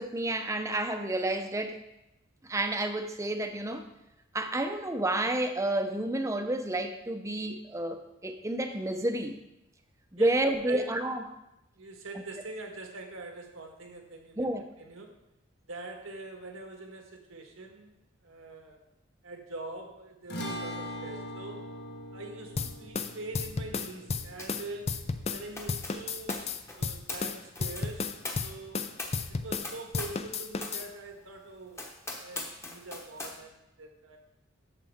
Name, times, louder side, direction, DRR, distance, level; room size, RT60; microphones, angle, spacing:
voice 1, 0.0-1.8 2.5-3.8 4.3-9.4 10.1-11.2 14.4-14.6, right 1 dB, 15° right, 7 dB, 0.7 m, -30 dB
voice 2, 10.2-10.9 11.7-14.5 14.8-15.2 15.6-18.0 18.2-18.8 19.2-21.7 22.1-25.0 25.3-26.4 26.7-28.1 28.4-28.8 29.3-31.9 32.2-34.2, right 2 dB, 85° right, 3 dB, 1.5 m, -44 dB
sound 1, 20.3-26.8, equal, 55° left, 1.5 m, -42 dB
sound 2, 22.6-25.4 25.7-29.7 29.9-30.9, left 4 dB, 30° left, 0.5 m, -33 dB
sound 3, 24.4-24.7 24.9-30.3 30.6-30.8 31.3-31.4 31.7-33.4, left 2 dB, 15° left, 1.1 m, -41 dB
11.5 x 7.4 x 3.6 m, 0.90 s
head